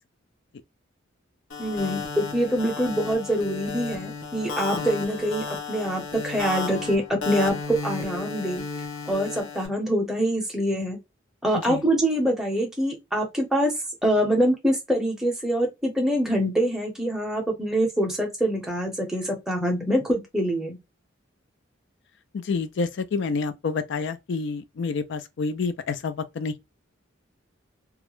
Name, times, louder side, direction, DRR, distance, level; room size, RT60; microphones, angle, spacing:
sound 1, 1.5-9.7, left 4 dB, 85° left, 0.8 m, -33 dB
voice 1, 1.6-8.6 9.1-11.0 11.4-13.7 14.0-20.8, equal, 5° right, 0.6 m, -25 dB
voice 2, 22.3-26.6, left 4 dB, 60° left, 0.3 m, -28 dB
2.3 x 2.1 x 2.9 m
head